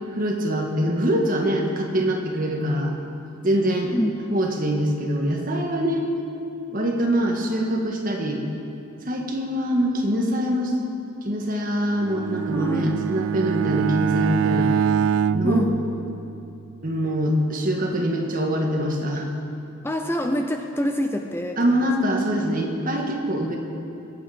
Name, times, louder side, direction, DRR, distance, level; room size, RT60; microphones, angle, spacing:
voice 1, 0.1-2.9 3.4-3.9 4.3-6.0 6.7-8.4 9.0-10.7 11.2-14.7 15.3-15.6 16.8-19.3 21.6-23.6, equal, 40° right, 1 dB, 1.7 m, -24 dB
Bowed string instrument, 11.9-16.6, right 7 dB, 85° right, 0.3 m, -24 dB
voice 2, 12.5-12.9 15.4-15.8 19.8-21.9, equal, 10° left, 4 dB, 0.5 m, -26 dB
22.5 x 8.7 x 5.0 m, 2.8 s
head